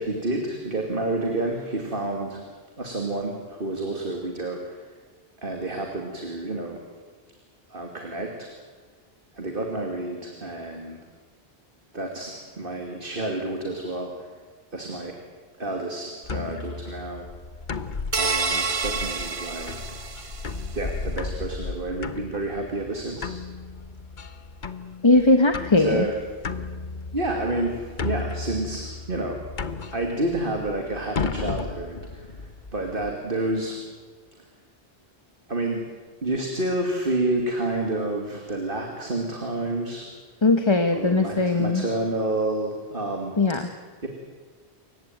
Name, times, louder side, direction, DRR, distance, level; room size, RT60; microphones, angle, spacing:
voice 1, 0.0-2.4 2.8-4.9 5.4-6.8 7.7-8.5 9.3-11.0 11.9-14.3 14.7-15.1 15.6-17.3 18.1-20.0 20.7-23.3 25.8-26.5 27.1-29.4 29.9-33.8 35.5-35.8 36.2-40.1 40.9-43.4 43.7-44.1, right 2 dB, 55° right, 2 dB, 2.7 m, -29 dB
sound 1, 16.2-33.1, left 4 dB, 50° left, 1.2 m, -35 dB
sound 2, 18.1-20.6, right 4 dB, 35° right, 0.9 m, -28 dB
voice 2, 25.0-26.1 40.4-41.8 43.4-43.6, left 2 dB, 25° left, 7 dB, 1.1 m, -19 dB
28.0 x 15.5 x 9.2 m, 1.5 s
omnidirectional pair, 1.1 m